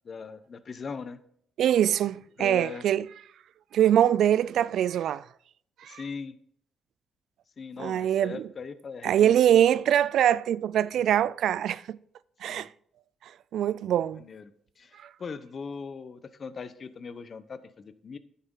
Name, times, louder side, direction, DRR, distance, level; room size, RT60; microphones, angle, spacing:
voice 1, 0.0-1.2 2.4-2.9 5.8-6.4 7.6-9.6 12.5-12.7 14.1-18.2, left 5 dB, 45° left, 0.8 m, -40 dB
voice 2, 1.6-3.0 3.7-5.2 5.8-6.0 7.8-8.4 9.0-12.0 12.4-12.7 13.5-14.2 15.0-15.1, right 10 dB, 70° right, 0.3 m, -23 dB
10.0 x 8.1 x 3.8 m
cardioid pair, 90°, 0 cm